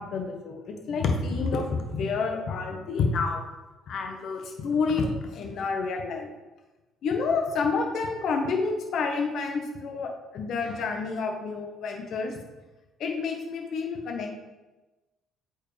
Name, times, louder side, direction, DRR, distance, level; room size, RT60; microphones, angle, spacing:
voice 1, 0.0-3.4 3.9-6.3 7.0-12.4 13.0-14.4, left 4 dB, 60° left, 4 dB, 1.2 m, -29 dB
8.5 x 4.7 x 3.4 m, 1.1 s
hypercardioid pair, 55°, 0 cm